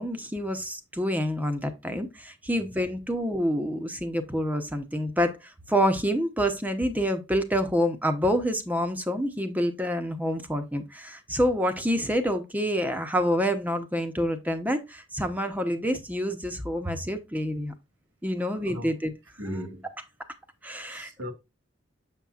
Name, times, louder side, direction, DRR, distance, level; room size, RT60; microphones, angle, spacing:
voice 1, 0.0-5.3 5.7-17.7 18.2-19.1 20.6-21.1, equal, 10° right, 0.9 m, -27 dB
voice 2, 18.5-19.0 19.4-19.9 20.9-21.3, equal, 80° right, 1.7 m, -37 dB
7.0 x 6.8 x 2.5 m
head